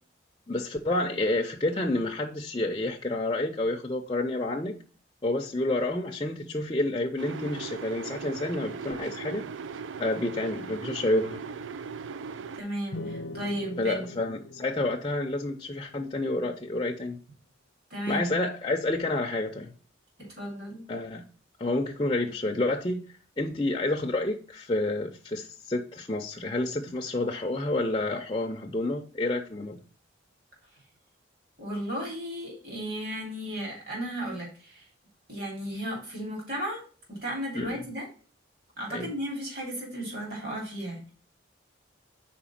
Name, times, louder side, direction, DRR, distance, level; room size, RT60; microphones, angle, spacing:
voice 1, 0.5-4.7 5.2-9.4 10.0-11.4 13.8-17.2 18.1-19.7 20.9-21.2 21.6-23.0 23.4-29.8 37.5-37.8 38.9-39.1, left 2 dB, 25° left, 2 dB, 0.5 m, -29 dB
sound 1, 7.2-12.6, right 6 dB, 70° right, 0.3 m, -38 dB
voice 2, 12.5-14.1 17.9-18.2 20.2-20.8 31.6-34.9 35.3-36.8 37.1-38.1 38.8-41.1, right 1 dB, 50° right, -1 dB, 3.0 m, -34 dB
sound 2, 12.9-16.5, left 2 dB, 75° left, 0.7 m, -41 dB
5.0 x 4.4 x 5.8 m, 0.40 s
head